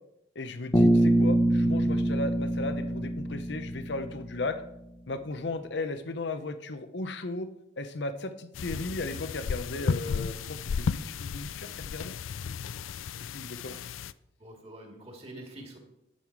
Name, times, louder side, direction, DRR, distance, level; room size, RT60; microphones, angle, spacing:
voice 1, 0.3-4.6 5.1-7.5 7.8-10.4 10.8-12.1 13.3-13.8, left 2 dB, 60° left, 10 dB, 0.7 m, -35 dB
Bass guitar, 0.7-4.6, right 1 dB, 20° left, 1.0 m, -25 dB
sound 1, 8.5-14.1, left 6 dB, 85° left, 0.4 m, -34 dB
voice 2, 9.7-10.2 14.4-15.8, right 1 dB, 30° right, 1 dB, 2.2 m, -46 dB
11.0 x 7.7 x 4.7 m, 0.81 s
head